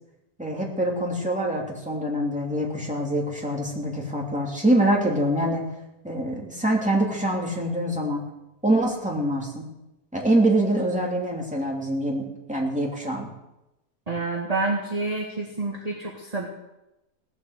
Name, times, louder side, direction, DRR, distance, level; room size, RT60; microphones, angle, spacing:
voice 1, 0.4-5.7 6.0-8.2 8.6-9.7 10.1-13.3, right 1 dB, 5° right, -2 dB, 2.9 m, -25 dB
voice 2, 14.1-16.5, right 3 dB, 25° right, -1 dB, 1.9 m, -28 dB
17.5 x 8.0 x 8.2 m, 0.93 s
omnidirectional pair, 1.8 m